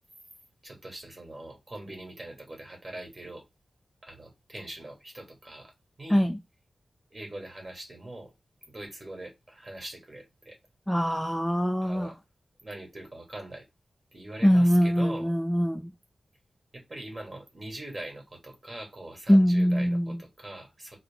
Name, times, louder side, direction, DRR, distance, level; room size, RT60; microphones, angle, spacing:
voice 1, 0.6-3.4 4.0-5.7 6.0-6.3 7.1-8.3 8.7-10.6 11.8-12.2 12.6-13.6 14.1-15.3 16.7-21.0, right 1 dB, 30° right, 2.0 m, -42 dB
voice 2, 10.9-12.1 14.4-15.9 19.3-20.2, equal, 5° left, 0.3 m, -23 dB
3.7 x 2.2 x 3.6 m
wide cardioid pair, 75°, 0 cm